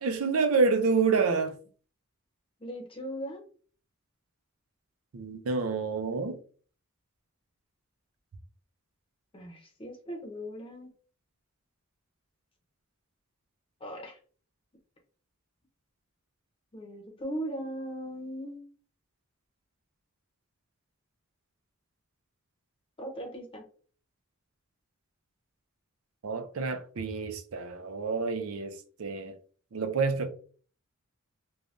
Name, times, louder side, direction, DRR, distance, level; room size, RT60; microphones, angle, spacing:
voice 1, 0.0-1.6 5.1-6.4 26.2-29.3 29.7-30.3, right 4 dB, 90° right, 0.5 m, -28 dB
voice 2, 2.6-3.4 9.3-10.9 13.8-14.2 16.7-18.6 23.0-23.7, equal, 25° left, 0.7 m, -38 dB
3.2 x 2.2 x 2.5 m
head